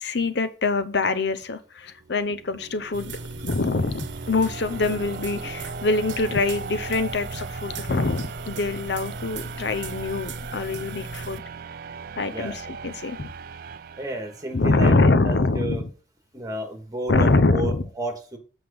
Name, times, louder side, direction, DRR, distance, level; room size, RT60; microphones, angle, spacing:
voice 1, 0.0-3.1 3.4-11.4 12.2-13.3 14.5-15.9 17.1-17.9, left 3 dB, 70° left, 12 dB, 0.7 m, -24 dB
sound 1, 1.9-14.8, right 5 dB, 55° right, 0.4 m, -39 dB
sound 2, 2.9-11.4, right 3 dB, 85° right, 1.0 m, -37 dB
voice 2, 14.0-15.8 16.3-18.4, right 1 dB, 20° right, 4 dB, 1.8 m, -32 dB
8.0 x 5.2 x 5.1 m, 0.39 s
head